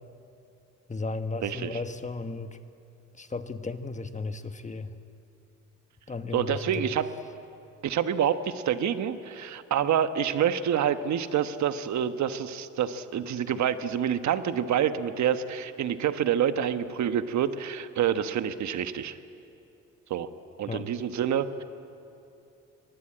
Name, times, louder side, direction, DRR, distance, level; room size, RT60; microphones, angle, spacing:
voice 1, 0.9-2.6 3.1-5.0 6.1-6.9 20.7-20.9, left 3 dB, 25° left, 8 dB, 1.4 m, -35 dB
voice 2, 1.4-1.8 6.3-7.1 7.8-19.2 20.1-20.3 20.6-21.6, right 9 dB, 65° right, 10 dB, 1.2 m, -27 dB
24.0 x 19.5 x 8.8 m, 2.8 s
cardioid pair, 90°, 30 cm